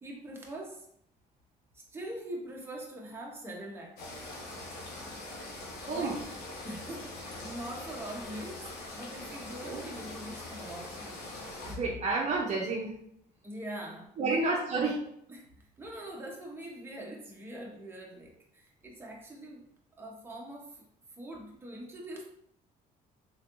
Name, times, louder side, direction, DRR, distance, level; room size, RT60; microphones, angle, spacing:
voice 1, 0.0-0.9 1.7-4.0 5.9-6.1 6.6-11.2 13.4-14.4 14.7-14.9 15.3-19.6 20.0-20.8 21.2-22.3, right 1 dB, 15° right, -2 dB, 0.9 m, -43 dB
sound 1, 4.0-11.8, left 2 dB, 80° left, 1.2 m, -43 dB
voice 2, 11.6-12.9 14.2-15.0, right 3 dB, 45° right, -2 dB, 0.7 m, -30 dB
3.6 x 3.2 x 2.5 m, 0.71 s
cardioid pair, 110°, 17 cm